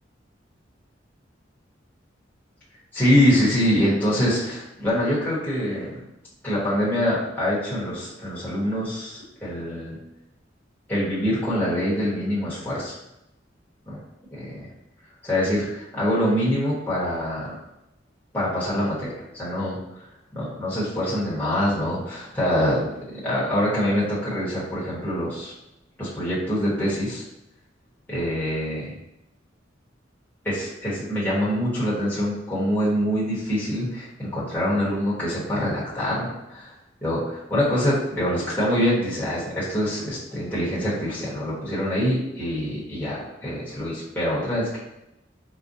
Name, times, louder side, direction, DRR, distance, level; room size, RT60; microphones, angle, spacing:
voice 1, 2.9-6.0 6.4-10.0 10.9-12.9 13.9-14.0 14.3-14.7 15.2-17.5 18.3-19.8 20.3-25.5 26.0-27.2 28.1-28.9 30.4-36.7 37.0-44.8, equal, 10° left, -10 dB, 1.2 m, -25 dB
4.8 x 2.2 x 2.7 m, 0.88 s
head